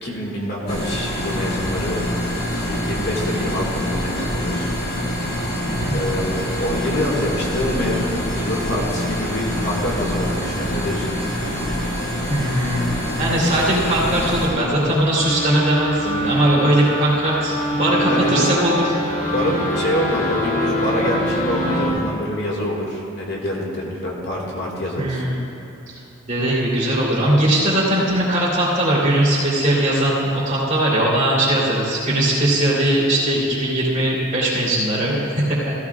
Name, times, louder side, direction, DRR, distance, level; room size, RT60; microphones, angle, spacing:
voice 1, 0.0-2.0 2.5-4.7 5.9-11.2 18.0-18.7 19.3-25.2, left 1 dB, 55° left, -3 dB, 2.0 m, -25 dB
sound 1, 0.7-14.5, equal, 35° left, 3.1 m, -25 dB
voice 2, 12.1-12.9 13.2-18.8 25.0-25.4 26.3-35.6, right 1 dB, 35° right, -7 dB, 3.3 m, -20 dB
sound 2, 15.1-21.9, equal, 75° left, 2.7 m, -24 dB
16.0 x 15.0 x 2.5 m, 2.8 s
head